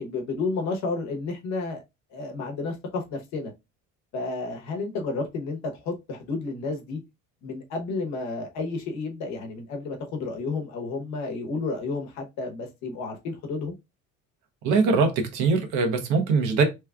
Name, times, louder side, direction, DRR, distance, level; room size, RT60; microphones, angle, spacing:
voice 1, 0.0-1.8 2.1-3.5 4.1-7.0 7.4-13.7, left 3 dB, 65° left, 1.0 m, -31 dB
voice 2, 14.6-16.6, right 4 dB, 80° right, 1.0 m, -22 dB
3.1 x 2.3 x 3.4 m
cardioid pair, 160°, 29 cm